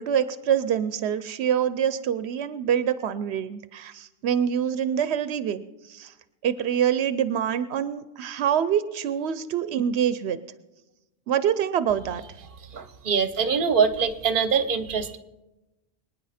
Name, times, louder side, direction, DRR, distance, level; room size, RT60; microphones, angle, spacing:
voice 1, 0.0-6.1 6.4-10.4 11.3-12.2, right 9 dB, 90° right, 13 dB, 0.9 m, -25 dB
voice 2, 12.7-15.2, right 6 dB, 55° right, 11 dB, 1.0 m, -23 dB
24.5 x 9.7 x 4.2 m, 1.0 s
omnidirectional pair, 1.1 m